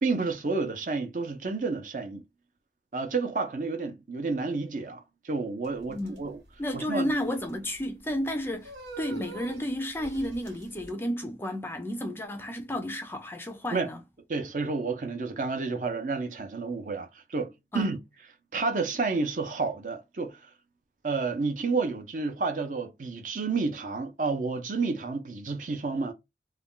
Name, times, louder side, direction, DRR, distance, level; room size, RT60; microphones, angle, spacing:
voice 1, 0.0-2.2 2.9-6.4 6.7-7.1 13.7-13.9 14.3-18.0 18.5-20.5 21.0-26.1, right 4 dB, 45° right, 0.5 m, -30 dB
sound 1, 5.6-10.9, right 4 dB, 85° right, 1.2 m, -46 dB
voice 2, 5.9-6.2 6.6-14.0 17.7-17.9, left 1 dB, 15° left, 0.3 m, -32 dB
2.4 x 2.2 x 3.6 m
head